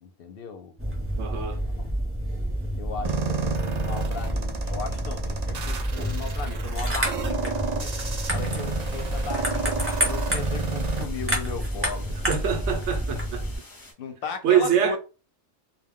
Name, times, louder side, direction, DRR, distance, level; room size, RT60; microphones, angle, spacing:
voice 1, 0.0-0.7 1.3-1.7 2.8-7.9 8.3-12.1 14.0-15.0, left 5 dB, 60° left, 0.7 m, -37 dB
sound 1, 0.8-13.6, equal, 15° right, 0.7 m, -29 dB
voice 2, 1.2-1.6 12.3-13.4 14.4-15.0, right 9 dB, 75° right, 0.9 m, -24 dB
sound 2, 3.0-11.0, right 4 dB, 50° right, 0.5 m, -31 dB
sound 3, 7.8-13.9, left 2 dB, 20° left, 0.7 m, -48 dB
2.2 x 2.2 x 3.5 m
omnidirectional pair, 1.2 m